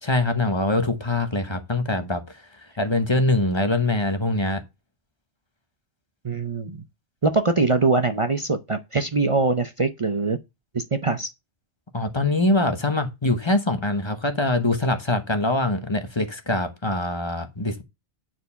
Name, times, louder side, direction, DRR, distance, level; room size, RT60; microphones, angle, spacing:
voice 1, 0.0-2.2 2.8-4.6 11.9-17.8, left 2 dB, 25° left, 1.1 m, -23 dB
voice 2, 6.2-6.8 7.2-10.4 10.7-11.3, right 3 dB, 35° right, 0.6 m, -23 dB
9.3 x 4.5 x 5.6 m
omnidirectional pair, 1.2 m